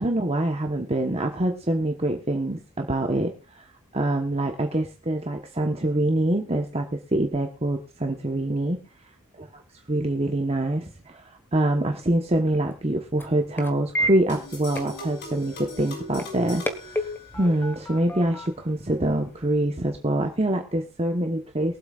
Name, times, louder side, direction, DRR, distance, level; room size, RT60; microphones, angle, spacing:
voice 1, 0.0-3.6 3.9-8.8 9.9-21.8, right 1 dB, 30° right, 3 dB, 1.2 m, -25 dB
sound 1, 11.8-19.6, right 1 dB, 10° left, 1.4 m, -35 dB
sound 2, 14.3-17.8, left 1 dB, 55° left, 6.6 m, -40 dB
22.5 x 8.1 x 2.5 m, 0.34 s
head